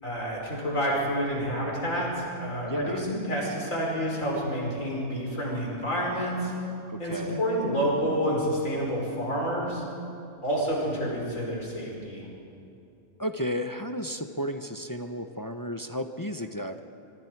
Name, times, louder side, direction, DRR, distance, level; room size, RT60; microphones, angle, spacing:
voice 1, 0.0-6.5 7.0-9.8 10.4-12.2, equal, 60° left, -2 dB, 5.3 m, -29 dB
voice 2, 2.6-3.1 6.9-7.4 13.2-16.8, equal, 20° left, 7 dB, 0.5 m, -33 dB
25.0 x 25.0 x 4.7 m, 2.7 s
omnidirectional pair, 1.5 m